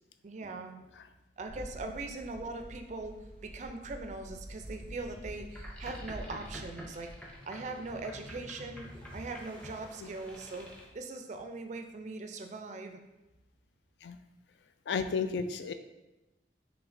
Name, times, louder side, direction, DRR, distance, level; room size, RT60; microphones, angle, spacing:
voice 1, 0.2-0.9 1.4-7.1 7.5-8.9 9.1-10.7 10.9-13.0, right 3 dB, 40° right, 5 dB, 0.4 m, -41 dB
sound 1, 1.4-7.4, equal, 30° left, 1.3 m, -47 dB
Boat Water vehicle, 5.4-10.9, equal, 5° left, 0.6 m, -48 dB
voice 2, 14.9-15.7, left 5 dB, 75° left, 9 dB, 0.3 m, -32 dB
4.9 x 3.1 x 2.6 m, 1.0 s
head